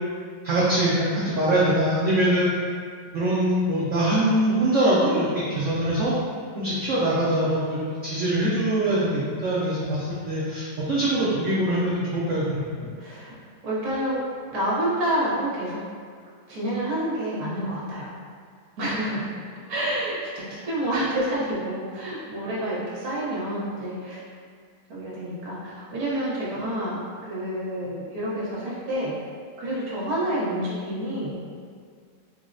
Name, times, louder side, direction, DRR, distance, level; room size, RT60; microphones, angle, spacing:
voice 1, 0.4-2.5 3.1-6.1 6.6-12.9, right 1 dB, 90° right, -8 dB, 0.6 m, -23 dB
voice 2, 13.0-13.3 13.6-14.2 14.5-15.8 16.5-18.1 18.8-19.3 19.7-24.2 24.9-29.1 29.6-31.4, right 1 dB, 60° right, -8 dB, 1.2 m, -28 dB
3.8 x 2.0 x 2.5 m, 2.1 s
omnidirectional pair, 1.9 m